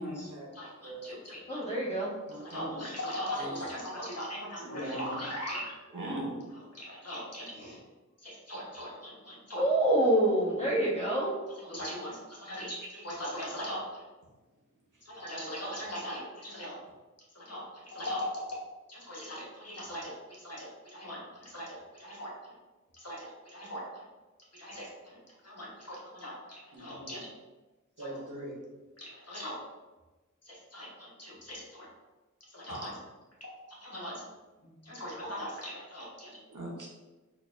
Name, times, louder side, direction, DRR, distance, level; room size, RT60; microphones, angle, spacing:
voice 1, 0.0-0.5 0.8-1.1 2.3-2.6 3.3-3.6 4.6-5.0 5.9-6.4 26.7-26.9 28.0-28.5 32.7-32.8 36.5-36.9, right 1 dB, 75° right, -3 dB, 0.9 m, -40 dB
voice 2, 0.5-1.6 2.5-5.7 6.7-7.8 8.2-9.6 11.7-13.8 15.1-16.8 17.3-22.3 23.0-23.8 24.5-24.9 25.4-27.3 28.0-28.1 29.0-29.6 30.4-31.9 32.5-32.9 33.4-34.2 34.6-36.4, equal, 50° left, -5 dB, 1.1 m, -40 dB
voice 3, 1.5-2.1 9.5-11.3, right 1 dB, 20° left, -6 dB, 1.2 m, -26 dB
4.3 x 2.6 x 2.5 m, 1.2 s
wide cardioid pair, 60°, 31 cm